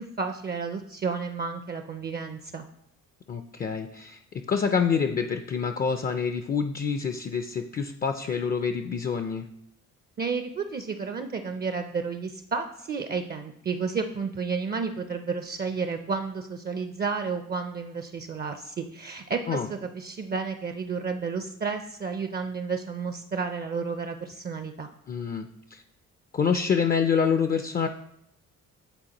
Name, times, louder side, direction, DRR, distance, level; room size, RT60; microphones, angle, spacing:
voice 1, 0.0-2.6 10.2-24.9, right 5 dB, 35° right, 7 dB, 0.4 m, -31 dB
voice 2, 3.3-4.2 4.5-9.5 19.5-19.7 25.1-25.8 26.3-27.9, left 6 dB, 30° left, 7 dB, 0.4 m, -27 dB
9.0 x 3.8 x 2.9 m, 0.75 s
cardioid pair, 90°, 30 cm